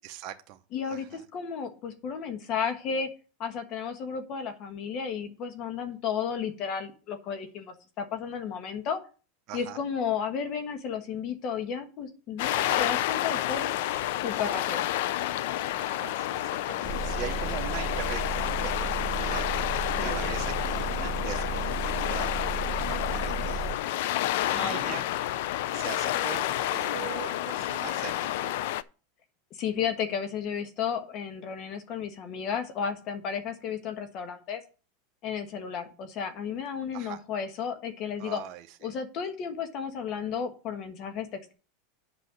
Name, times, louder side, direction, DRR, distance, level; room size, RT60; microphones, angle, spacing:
voice 1, 0.0-0.6 0.9-1.3 9.5-9.8 12.5-12.8 15.8-24.2 24.5-25.1 25.6-28.6 36.9-37.2 38.2-38.9, right 12 dB, 45° right, 4 dB, 0.9 m, -41 dB
voice 2, 0.7-3.1 3.4-9.0 9.5-13.7 14.2-14.9 20.0-20.4 24.5-25.0 29.5-34.6 35.2-38.4 38.8-41.5, left 7 dB, 45° left, 8 dB, 1.4 m, -33 dB
sound 1, 12.4-28.8, left 14 dB, 70° left, 0.5 m, -30 dB
Motor vehicle (road) / Engine, 16.8-23.8, right 4 dB, 5° right, 1.2 m, -34 dB
8.1 x 5.6 x 6.5 m, 0.36 s
supercardioid pair, 130°, 0 cm